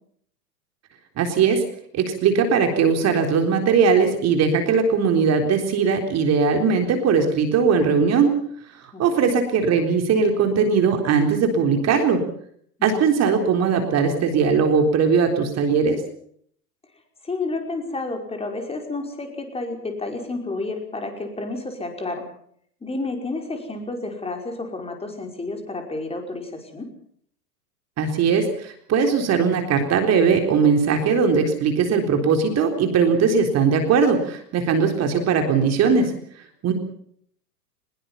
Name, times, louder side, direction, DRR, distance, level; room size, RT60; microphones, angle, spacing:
voice 1, 1.2-1.6 1.9-8.3 8.8-12.2 12.8-16.0 28.0-36.1 36.6-36.7, right 5 dB, 30° right, 5 dB, 3.9 m, -19 dB
voice 2, 8.9-9.3 12.8-13.0 17.2-22.3 22.8-26.9, left 3 dB, 10° left, 3 dB, 5.3 m, -30 dB
23.5 x 21.5 x 5.7 m, 0.64 s
hypercardioid pair, 105°, 48 cm